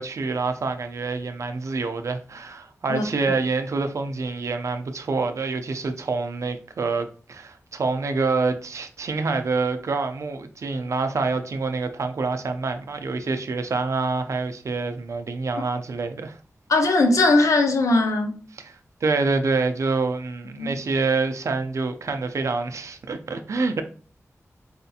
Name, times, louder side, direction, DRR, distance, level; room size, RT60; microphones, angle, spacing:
voice 1, 0.0-16.4 18.6-18.7 19.0-23.8, right 3 dB, 70° right, 0.4 m, -26 dB
voice 2, 16.7-18.4 20.5-20.7, left 2 dB, 80° left, 0.6 m, -19 dB
4.2 x 2.7 x 2.3 m
wide cardioid pair, 105°, 5 cm